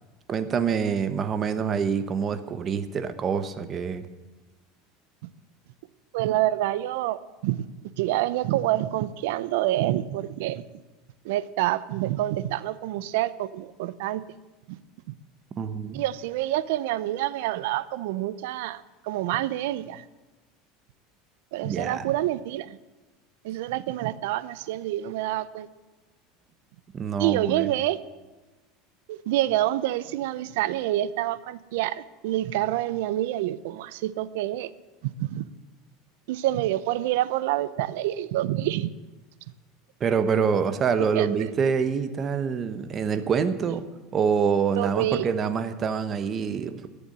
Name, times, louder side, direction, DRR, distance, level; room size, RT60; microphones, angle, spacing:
voice 1, 0.3-4.1 15.6-16.0 21.6-22.0 26.9-27.7 40.0-43.8 44.1-46.9, right 6 dB, 30° right, 11 dB, 1.1 m, -26 dB
voice 2, 6.1-7.6 8.0-10.6 11.2-14.2 14.7-14.8 15.9-20.0 21.5-22.8 23.4-25.7 27.2-28.0 29.1-34.7 35.0-35.5 36.3-38.9 40.6-40.7 41.1-41.5 43.7-43.8 44.8-45.3, right 14 dB, 75° right, 17 dB, 0.7 m, -27 dB
14.0 x 7.0 x 9.8 m, 1.2 s
supercardioid pair, 130°, 0 cm